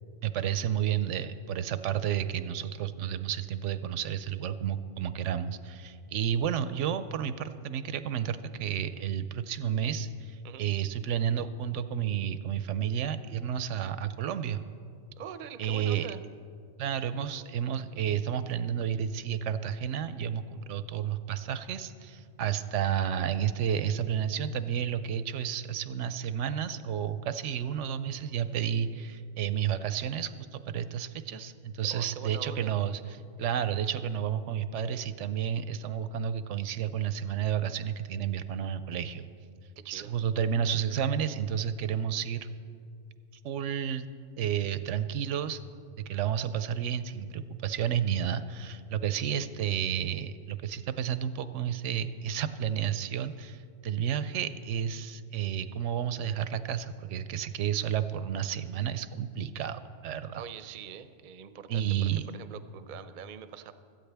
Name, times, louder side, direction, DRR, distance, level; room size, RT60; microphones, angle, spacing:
voice 1, 0.2-14.6 15.6-16.1 16.8-33.0 33.4-39.3 39.9-42.5 43.4-44.1 44.4-45.6 46.1-60.4 61.7-62.3, right 9 dB, 80° right, 12 dB, 0.9 m, -31 dB
voice 2, 15.2-16.2 31.9-32.7 39.8-40.1 60.3-63.7, right 8 dB, 50° right, 11 dB, 0.6 m, -43 dB
16.5 x 13.5 x 3.4 m, 2.3 s
omnidirectional pair, 1.2 m